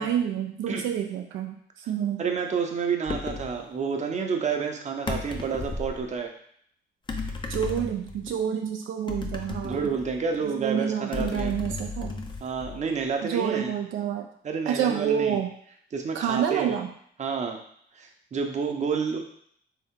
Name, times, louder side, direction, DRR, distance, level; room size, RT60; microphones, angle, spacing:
voice 1, 0.0-2.2 7.5-9.9 10.4-12.2 13.2-14.3 14.7-15.5 16.1-16.9, right 9 dB, 75° right, 3 dB, 0.4 m, -28 dB
voice 2, 2.2-6.3 9.6-11.5 12.4-13.7 14.4-15.4 15.9-16.8 17.2-17.6 17.9-19.2, right 5 dB, 35° right, 3 dB, 0.7 m, -29 dB
sound 1, 3.1-3.5 5.1-6.0 7.1-8.3 9.1-10.4 11.1-13.0, left 3 dB, 25° left, 0.5 m, -34 dB
3.4 x 2.8 x 3.6 m, 0.64 s
cardioid pair, 90°, 20 cm